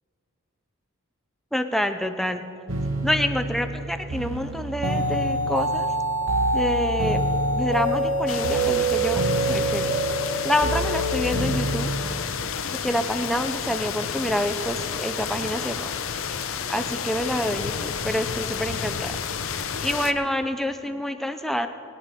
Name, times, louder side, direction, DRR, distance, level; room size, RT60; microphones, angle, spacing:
voice 1, 1.5-2.5 3.0-5.9 6.5-7.2 7.5-9.2 9.5-10.0 10.4-11.9 12.8-15.9 16.7-19.2 19.8-21.7, equal, ahead, 7 dB, 0.5 m, -27 dB
sound 1, 2.7-12.0, right 1 dB, 65° right, 1.0 m, -25 dB
sound 2, 8.3-20.1, left 7 dB, 65° left, 0.6 m, -31 dB
20.0 x 10.5 x 4.2 m, 2.5 s
head